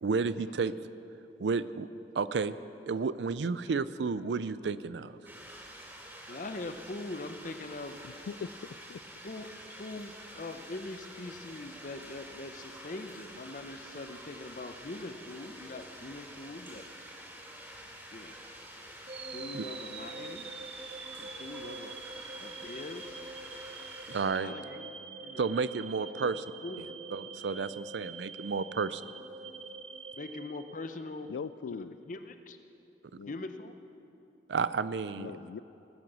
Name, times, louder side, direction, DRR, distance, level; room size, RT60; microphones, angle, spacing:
voice 1, 0.0-0.7 1.4-1.9 2.1-2.6 2.9-5.1 19.5-19.6 24.1-24.5 25.4-26.4 26.8-26.9 27.1-29.0 34.5-35.3, right 5 dB, 80° right, 15 dB, 0.5 m, -31 dB
sound 1, 5.2-24.2, equal, 15° right, 2.7 m, -48 dB
voice 2, 6.3-8.0 9.2-16.8 18.1-18.4 19.3-20.5 21.2-21.9 22.4-23.2 24.3-25.5 26.2-26.3 26.6-26.9 30.2-31.4 31.7-32.6 33.3-33.8, left 2 dB, 50° left, 8 dB, 0.7 m, -42 dB
voice 3, 8.0-8.5 8.9-9.0 31.3-32.0 33.2-33.3 35.2-35.6, left 6 dB, 85° left, 17 dB, 0.3 m, -40 dB
sound 2, 19.1-31.2, right 4 dB, 35° right, 0.6 m, -45 dB
18.0 x 9.1 x 6.2 m, 2.8 s
head